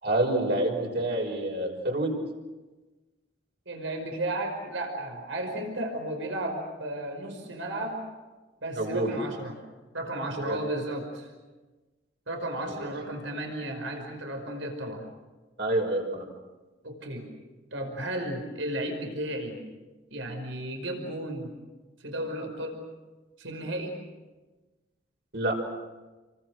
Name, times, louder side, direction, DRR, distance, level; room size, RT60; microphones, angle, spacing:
voice 1, 0.0-2.2 8.8-9.1 10.4-10.6 12.7-12.9 15.6-16.3 25.3-25.6, right 1 dB, 55° right, 1 dB, 6.1 m, -27 dB
voice 2, 3.7-8.0 8.6-9.6 9.9-11.3 12.3-15.1 16.8-17.3 17.7-19.6 20.1-21.6 22.0-22.8 23.4-24.0, right 1 dB, 75° right, 3 dB, 5.5 m, -34 dB
30.0 x 24.0 x 6.3 m, 1.2 s
head